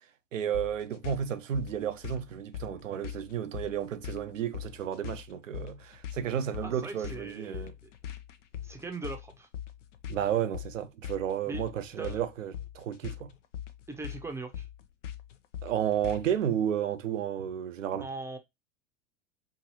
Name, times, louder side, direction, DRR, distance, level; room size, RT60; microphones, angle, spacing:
voice 1, 0.3-7.7 10.1-13.3 15.6-18.1, right 9 dB, 75° right, 0.7 m, -32 dB
sound 1, 0.5-16.4, left 10 dB, 70° left, 0.6 m, -41 dB
voice 2, 6.6-7.7 8.6-9.5 11.5-11.6 12.0-12.2 13.9-14.7 18.0-18.4, right 3 dB, 5° right, 0.6 m, -40 dB
4.7 x 2.6 x 2.8 m
figure-of-eight pair, 90°, 38 cm